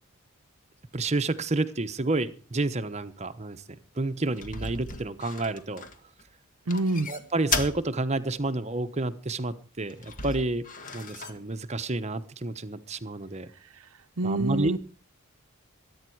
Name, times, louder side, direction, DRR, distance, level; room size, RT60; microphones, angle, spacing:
voice 1, 0.9-3.6 4.0-5.8 7.1-10.6 10.9-13.5 14.2-14.7, right 2 dB, 30° right, 10 dB, 1.0 m, -30 dB
sound 1, 4.3-6.2 6.7-7.8 8.1-8.2 9.9-11.4, left 4 dB, 35° left, 1.7 m, -34 dB
voice 2, 6.7-7.1 14.2-14.8, right 2 dB, 75° right, 10 dB, 0.8 m, -26 dB
21.5 x 9.7 x 4.7 m, 0.37 s
head